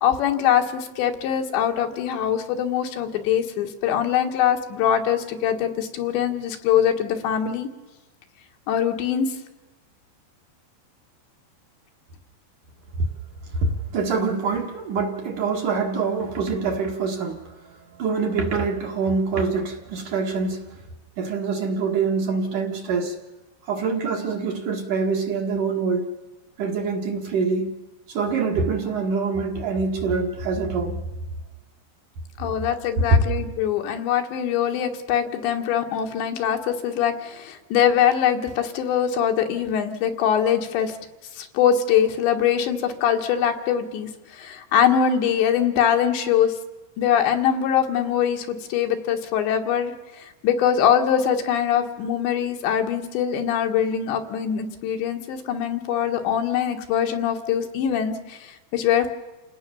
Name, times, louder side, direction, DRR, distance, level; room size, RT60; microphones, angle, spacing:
voice 1, 0.0-7.7 8.7-9.3 32.4-41.0 41.4-46.5 47.0-59.1, left 9 dB, 75° left, 3.8 m, -23 dB
voice 2, 13.5-20.8 21.2-23.2 23.7-26.1 26.6-27.8 28.1-31.0 33.1-33.2, right 4 dB, 55° right, 2.9 m, -25 dB
29.0 x 18.0 x 7.1 m
omnidirectional pair, 5.2 m